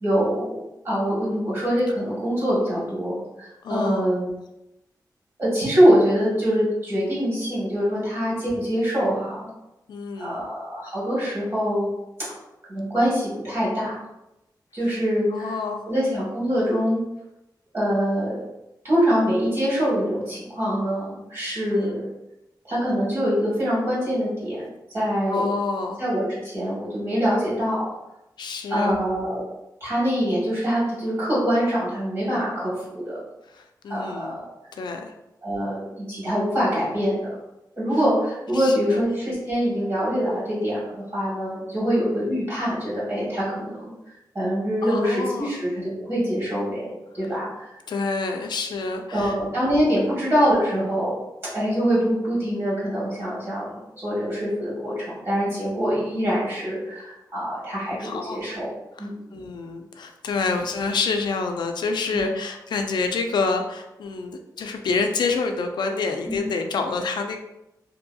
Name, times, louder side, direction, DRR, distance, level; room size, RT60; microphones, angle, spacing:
voice 1, 0.0-3.1 3.4-4.3 5.4-9.5 10.2-11.9 12.7-14.0 14.7-15.5 15.9-17.0 17.7-18.4 18.8-22.1 22.7-24.6 24.9-25.4 26.0-27.9 28.7-29.4 29.8-33.2 33.9-34.5 35.4-37.3 37.8-43.9 44.3-46.9 47.1-47.7 49.1-51.1 51.5-58.7 59.0-59.3 62.1-62.2 66.3-66.4, equal, 40° right, -8 dB, 1.5 m, -24 dB
voice 2, 3.6-4.1 9.9-10.5 15.3-15.9 21.6-22.0 25.3-26.0 28.4-29.0 33.5-34.4 34.8-35.1 38.5-39.0 44.8-45.5 47.9-49.4 50.0-50.1 57.9-58.6 58.9-67.4, left 4 dB, 80° left, 4 dB, 0.3 m, -28 dB
2.7 x 2.7 x 2.2 m, 0.91 s
wide cardioid pair, 150°, 7 cm